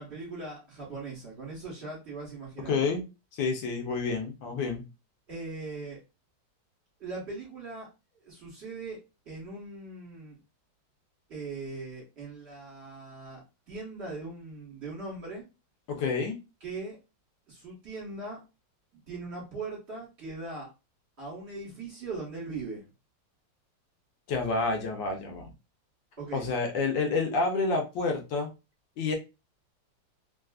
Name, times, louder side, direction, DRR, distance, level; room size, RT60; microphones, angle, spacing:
voice 1, 0.0-2.9 5.3-6.0 7.0-7.9 8.2-9.0 9.2-10.4 11.3-15.5 16.6-17.0 17.5-18.4 19.1-20.7 21.2-22.8 26.2-26.5, right 3 dB, 40° right, -5 dB, 1.5 m, -40 dB
voice 2, 2.7-3.0 3.3-4.8 15.9-16.4 24.3-25.5 26.3-28.5 29.0-29.2, left 4 dB, 80° left, 3 dB, 1.4 m, -29 dB
3.3 x 2.4 x 2.3 m, 0.27 s
omnidirectional pair, 2.0 m